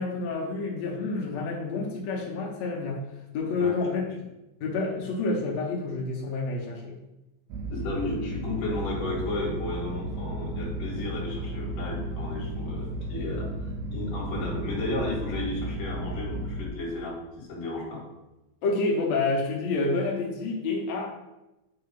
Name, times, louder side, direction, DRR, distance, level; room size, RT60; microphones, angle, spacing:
voice 1, 0.0-3.0 3.3-4.0 4.6-7.0 18.6-21.2, left 3 dB, 85° left, -2 dB, 1.5 m, -28 dB
sound 1, 7.5-16.7, right 1 dB, 80° right, 2.5 m, -34 dB
voice 2, 7.7-18.0, left 2 dB, 50° left, -2 dB, 2.3 m, -33 dB
8.4 x 2.8 x 5.2 m, 0.97 s
omnidirectional pair, 4.6 m